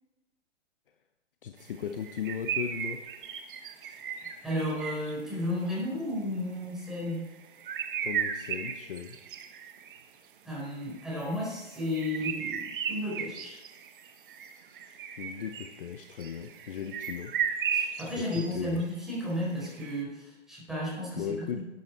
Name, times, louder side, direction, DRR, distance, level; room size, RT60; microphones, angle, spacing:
voice 1, 1.4-3.0 8.0-9.2 15.2-17.4 17.8-18.8 21.2-21.6, left 8 dB, 45° left, 7 dB, 0.8 m, -37 dB
sound 1, 2.0-5.3 6.8-7.1 7.4-10.0 10.8-18.5 18.8-18.9 19.6-20.0, right 8 dB, 45° right, 1.2 m, -35 dB
voice 2, 4.4-7.3 10.4-13.6 17.7-21.6, left 1 dB, ahead, -6 dB, 4.5 m, -33 dB
11.5 x 9.3 x 4.3 m, 1.1 s
figure-of-eight pair, 130°, 37 cm